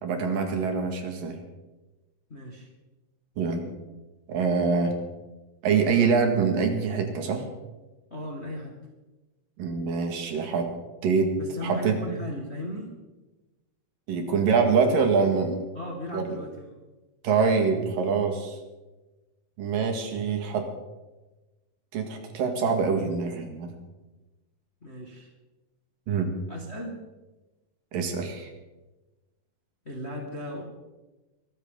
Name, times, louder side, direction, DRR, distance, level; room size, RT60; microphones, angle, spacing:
voice 1, 0.0-1.4 3.4-3.6 4.3-4.9 5.6-7.4 9.6-10.7 11.0-11.3 11.6-12.0 14.1-15.6 16.1-16.4 17.2-18.6 19.6-20.6 21.9-23.7 26.1-26.3 27.9-28.5, right 5 dB, 85° right, 4 dB, 3.6 m, -25 dB
voice 2, 2.3-2.7 8.1-8.8 11.4-12.9 15.7-16.8 24.8-25.3 26.5-27.0 29.8-30.6, equal, 30° left, 0 dB, 1.4 m, -36 dB
23.0 x 13.5 x 3.9 m, 1.1 s
omnidirectional pair, 3.8 m